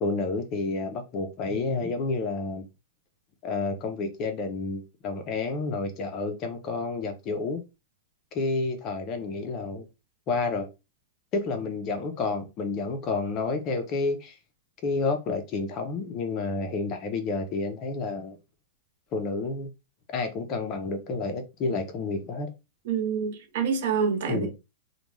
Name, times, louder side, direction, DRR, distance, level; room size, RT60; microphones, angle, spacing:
voice 1, 0.0-2.6 3.4-7.6 8.3-9.9 10.3-10.7 11.3-14.3 14.8-18.4 19.1-19.7 20.1-22.5 24.3-24.5, left 3 dB, 25° left, 0.5 m, -30 dB
voice 2, 22.9-24.5, right 6 dB, 55° right, 0.6 m, -27 dB
2.4 x 2.2 x 3.1 m
supercardioid pair, 165°, 0 cm